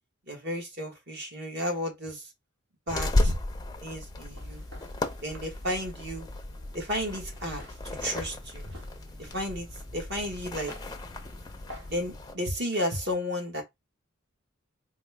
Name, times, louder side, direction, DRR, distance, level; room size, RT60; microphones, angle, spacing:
voice 1, 0.3-2.3 2.9-3.4 3.8-4.6 5.2-6.3 6.7-7.6 7.9-8.7 9.2-9.7 9.9-10.7 11.9-13.6, equal, 55° right, 1.3 m, -33 dB
sound 1, 2.9-12.3, left 1 dB, 20° left, 0.5 m, -34 dB
Walk footsteps, 4.2-12.0, equal, 80° right, 1.3 m, -52 dB
4.2 x 2.1 x 3.3 m
head